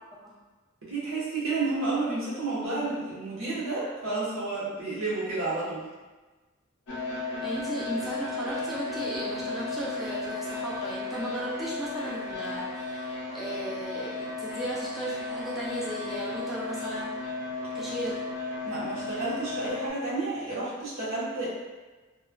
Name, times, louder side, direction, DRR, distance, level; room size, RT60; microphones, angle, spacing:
voice 1, 0.9-5.9 18.6-21.5, right 3 dB, 70° right, -8 dB, 1.0 m, -31 dB
sound 1, 6.9-19.9, left 2 dB, 60° left, 0.6 m, -34 dB
voice 2, 7.4-17.1 17.7-18.2, right 1 dB, ahead, -8 dB, 0.4 m, -36 dB
3.1 x 2.3 x 2.2 m, 1.2 s
head